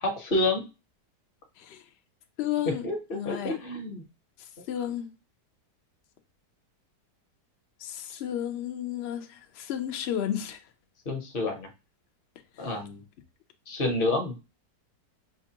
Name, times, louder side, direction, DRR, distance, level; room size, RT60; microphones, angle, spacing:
voice 1, 0.0-0.7 2.7-4.0 8.1-8.2 11.1-11.7 12.6-13.0 13.7-14.4, left 2 dB, 40° left, 0.9 m, -29 dB
voice 2, 2.4-2.9 3.1-3.6 4.4-5.1 7.8-10.6 12.6-12.7, left 10 dB, 90° left, 0.5 m, -33 dB
5.9 x 2.3 x 2.8 m
omnidirectional pair, 1.9 m